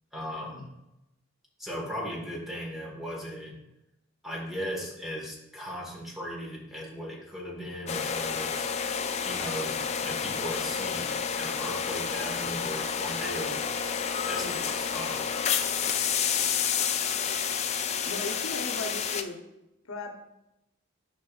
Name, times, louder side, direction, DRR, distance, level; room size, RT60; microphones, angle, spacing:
voice 1, 0.1-0.7 1.6-3.6 4.2-8.7 9.2-11.1 11.3-13.6 14.2-15.2, equal, ahead, -3 dB, 1.5 m, -37 dB
sound 1, 7.9-19.2, left 7 dB, 30° left, 0.3 m, -30 dB
voice 2, 18.0-19.4 19.8-20.1, left 2 dB, 85° left, 4 dB, 0.9 m, -37 dB
10.5 x 5.4 x 2.4 m, 0.90 s
head